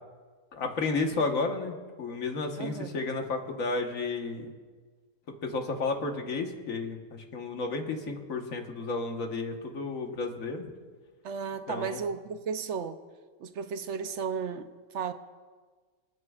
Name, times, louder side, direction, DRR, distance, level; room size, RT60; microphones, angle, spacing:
voice 1, 0.5-4.5 5.4-10.7 11.7-12.0, left 3 dB, 90° left, 3 dB, 1.7 m, -32 dB
voice 2, 2.6-2.9 11.2-13.0 13.4-15.1, right 6 dB, 65° right, 10 dB, 0.9 m, -34 dB
28.5 x 9.7 x 2.4 m, 1.5 s
omnidirectional pair, 1.4 m